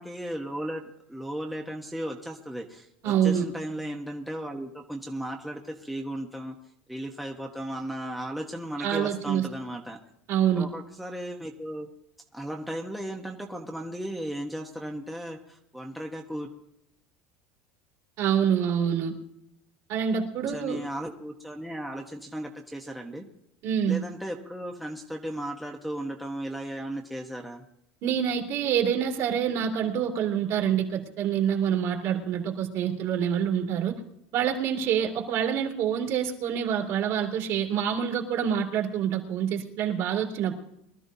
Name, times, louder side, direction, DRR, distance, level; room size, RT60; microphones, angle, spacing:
voice 1, 0.0-6.5 6.9-10.0 10.5-11.9 12.3-16.5 20.5-23.2 23.9-27.6, right 1 dB, ahead, 0 dB, 1.0 m, -35 dB
voice 2, 3.0-3.5 8.8-9.5 10.3-10.7 18.2-19.1 19.9-20.8 23.6-24.0 28.0-33.9 34.3-40.5, right 8 dB, 50° right, 0 dB, 2.9 m, -26 dB
23.5 x 13.5 x 2.7 m, 0.79 s
cardioid pair, 155°, 6 cm